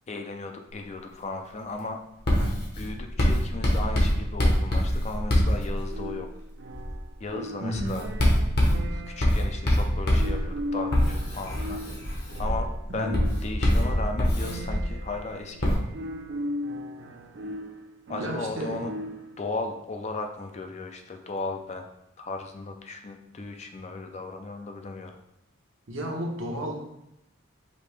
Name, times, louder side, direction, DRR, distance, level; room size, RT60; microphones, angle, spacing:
voice 1, 0.1-2.0 2.8-6.3 7.2-8.1 8.9-11.8 12.1-15.9 18.1-18.9 19.4-21.9 22.2-25.2, left 3 dB, 35° left, 4 dB, 0.4 m, -36 dB
Writing, 2.2-6.2 6.7-7.0 7.7-15.1 15.6-15.7, equal, 50° left, 1.0 m, -25 dB
sound 1, 5.9-19.5, equal, 55° right, 0.4 m, -38 dB
voice 2, 7.6-7.9 12.9-13.2 18.2-18.8 25.9-26.7, equal, 75° right, 0 dB, 0.9 m, -32 dB
5.1 x 2.8 x 3.3 m, 0.83 s
head